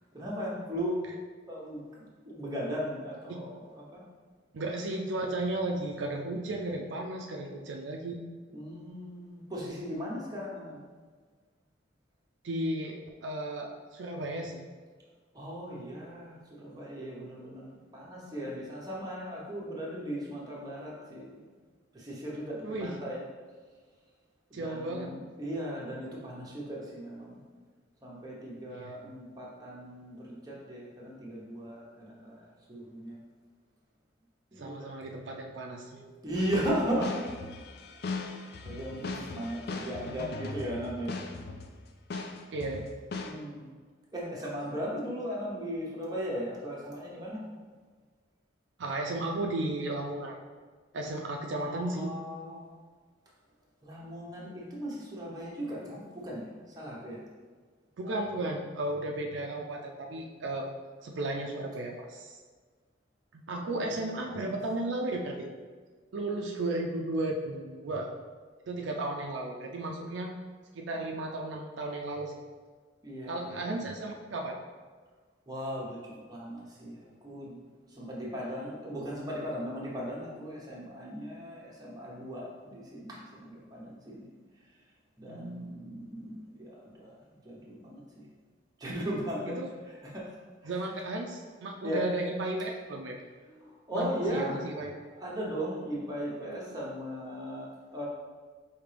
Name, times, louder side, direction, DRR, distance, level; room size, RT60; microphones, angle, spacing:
voice 1, 0.1-1.0 1.5-1.8 2.2-4.0 8.5-10.8 15.3-21.4 21.9-23.2 24.5-27.4 28.0-33.2 34.5-34.9 35.9-37.3 38.2-41.2 43.2-43.7 44.1-47.4 51.6-52.7 53.8-57.2 63.7-64.4 73.0-73.8 75.5-77.6 77.9-84.3 85.2-88.2 88.8-89.6 90.1-90.3 90.6-90.8 91.8-92.0 93.4-94.6 95.1-98.0, equal, 20° right, -5 dB, 0.8 m, -37 dB
voice 2, 4.5-8.2 12.4-14.6 22.6-22.9 24.5-25.1 28.7-29.0 34.6-36.0 42.5-42.8 48.8-50.4 50.9-52.1 58.0-60.7 61.0-62.4 63.3-65.5 66.1-68.1 68.7-70.3 70.7-72.4 73.3-74.6 85.3-85.9 89.5-89.7 90.6-93.2 93.9-95.0, right 2 dB, 70° right, 1 dB, 0.4 m, -34 dB
sound 1, 36.3-41.8 42.1-43.3, left 3 dB, 55° left, 0.4 m, -39 dB
5.1 x 2.8 x 3.3 m, 1.5 s
head